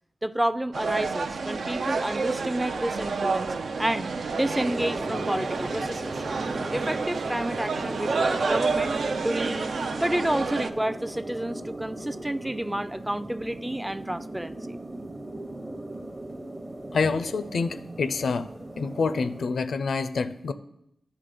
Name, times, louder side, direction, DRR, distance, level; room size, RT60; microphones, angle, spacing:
voice 1, 0.2-6.2 6.7-8.9 9.2-14.8, right 1 dB, 10° right, 14 dB, 0.4 m, -30 dB
sound 1, 0.7-10.7, right 4 dB, 75° right, 0.5 m, -29 dB
sound 2, 4.4-19.4, right 1 dB, 30° right, 0.9 m, -38 dB
voice 2, 16.9-18.5 18.8-20.5, left 4 dB, 75° left, 12 dB, 0.5 m, -27 dB
10.0 x 3.5 x 6.8 m, 0.79 s
cardioid pair, 55°, 0 cm